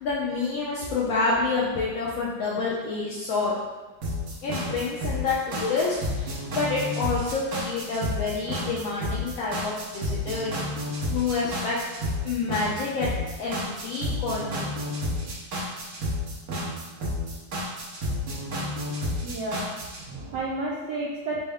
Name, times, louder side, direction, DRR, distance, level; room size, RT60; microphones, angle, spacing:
voice 1, 0.0-3.5 4.4-10.6 11.1-11.8 12.2-13.1 13.4-14.7, left 4 dB, 75° left, -5 dB, 1.2 m, -28 dB
sound 1, 4.0-20.0, left 1 dB, 65° right, 1.4 m, -31 dB
voice 2, 19.2-19.7 20.1-21.4, right 2 dB, 80° right, -5 dB, 1.0 m, -31 dB
4.3 x 2.0 x 3.4 m, 1.3 s
omnidirectional pair, 2.3 m